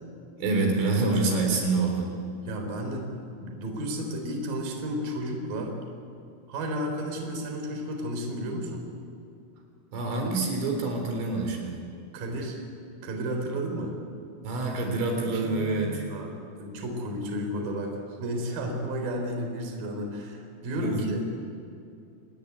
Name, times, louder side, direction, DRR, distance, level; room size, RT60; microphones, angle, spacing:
voice 1, 0.4-2.1 9.9-11.8 14.4-16.1 20.8-21.1, right 3 dB, 70° right, 2 dB, 6.0 m, -26 dB
voice 2, 2.5-3.1 3.4-5.8 6.5-8.9 12.1-12.6 13.0-14.0 16.1-21.2, equal, 45° right, 3 dB, 5.4 m, -32 dB
Guitar, 15.3-16.5, right 10 dB, 90° right, 1.8 m, -42 dB
28.0 x 20.0 x 9.7 m, 2.5 s
omnidirectional pair, 5.9 m